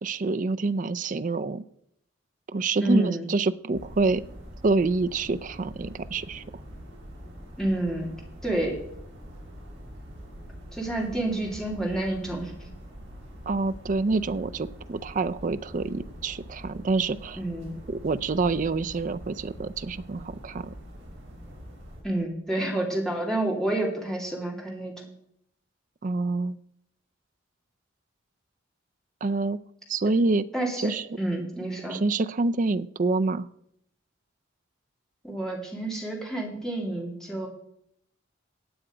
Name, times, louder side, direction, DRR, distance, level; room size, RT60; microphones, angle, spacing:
voice 1, 0.0-1.6 2.5-4.2 4.6-6.4 13.5-17.4 17.9-20.7 26.0-26.6 29.2-29.6 29.9-30.5 30.8-31.1 31.9-33.5, right 3 dB, 40° right, 12 dB, 0.4 m, -27 dB
voice 2, 2.8-3.3 7.6-8.1 8.4-8.8 10.7-12.7 17.4-17.8 22.0-25.0 30.5-30.9 31.2-32.0 35.2-37.5, right 1 dB, 5° left, -1 dB, 2.6 m, -29 dB
sound 1, 3.7-22.0, equal, 55° right, 6.2 m, -44 dB
16.0 x 8.8 x 5.0 m, 0.77 s
head